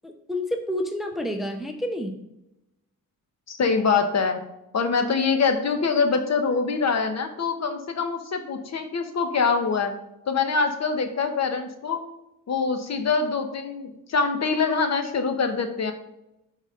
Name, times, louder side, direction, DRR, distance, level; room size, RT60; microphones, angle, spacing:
voice 1, 0.0-2.2, left 1 dB, ahead, 5 dB, 0.6 m, -29 dB
voice 2, 3.5-4.4 4.7-9.9 10.3-12.0 12.5-15.9, left 5 dB, 50° left, 7 dB, 1.0 m, -24 dB
11.5 x 4.1 x 3.8 m, 0.88 s
wide cardioid pair, 140°, 34 cm